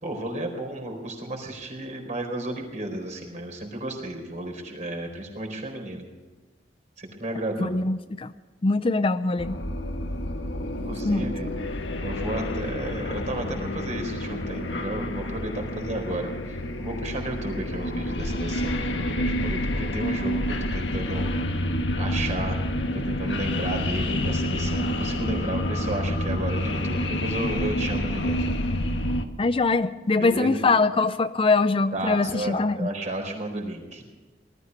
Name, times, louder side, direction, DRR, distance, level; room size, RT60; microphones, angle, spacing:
voice 1, 0.0-6.0 7.0-7.7 10.6-11.5 12.0-21.3 22.0-22.6 22.9-28.5 30.1-30.6 31.9-34.0, right 1 dB, 45° right, 2 dB, 4.3 m, -33 dB
voice 2, 7.6-8.3 8.6-9.6 11.0-11.2 29.4-32.9, left 3 dB, 30° left, 12 dB, 0.5 m, -23 dB
sound 1, 9.4-29.3, left 1 dB, 90° left, 1.5 m, -28 dB
19.5 x 13.5 x 5.4 m, 1.3 s
head